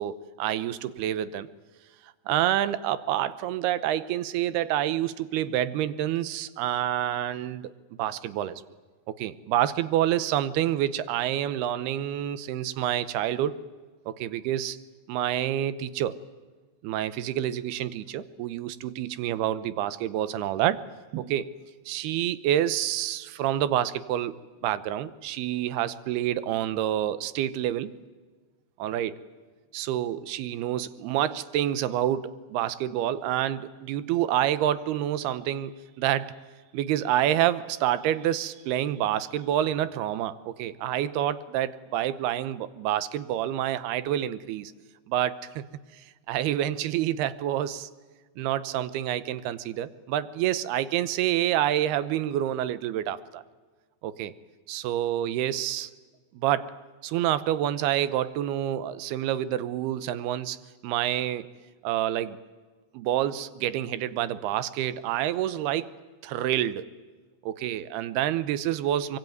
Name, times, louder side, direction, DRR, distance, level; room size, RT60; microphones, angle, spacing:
voice 1, 0.0-1.5 2.3-7.7 8.0-8.6 9.1-13.6 14.1-14.8 15.1-16.2 16.8-20.8 21.1-21.5 21.9-24.3 24.6-27.9 28.8-29.2 29.7-36.3 36.7-44.7 45.1-45.6 46.3-47.9 48.4-53.4 54.0-54.3 54.7-55.9 56.3-56.7 57.0-60.6 60.8-61.5 61.8-62.4 62.9-65.9 66.2-66.9 67.5-69.2, right 12 dB, 80° right, 16 dB, 2.8 m, -28 dB
24.0 x 23.0 x 9.4 m, 1.4 s
omnidirectional pair, 4.6 m